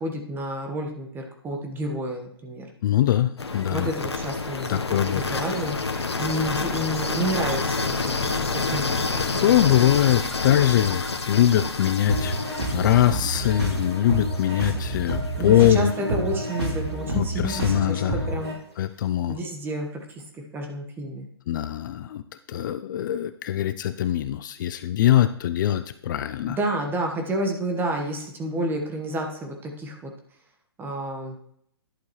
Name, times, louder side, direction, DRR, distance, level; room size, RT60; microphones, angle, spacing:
voice 1, 0.0-2.7 3.7-5.8 6.2-8.1 8.5-8.8 9.1-9.5 15.4-18.5 19.3-21.3 26.5-30.1 30.8-31.4, right 1 dB, 15° right, 2 dB, 1.4 m, -30 dB
voice 2, 2.8-3.9 4.7-5.6 9.2-15.9 17.2-18.2 18.8-19.4 21.5-22.2 22.5-26.6, left 12 dB, 50° left, 12 dB, 0.5 m, -22 dB
sound 1, 3.4-15.3, left 3 dB, 85° left, 1.1 m, -28 dB
sound 2, 12.1-18.5, right 1 dB, 85° right, 3.7 m, -29 dB
11.0 x 6.8 x 3.2 m, 0.68 s
hypercardioid pair, 130°, 13 cm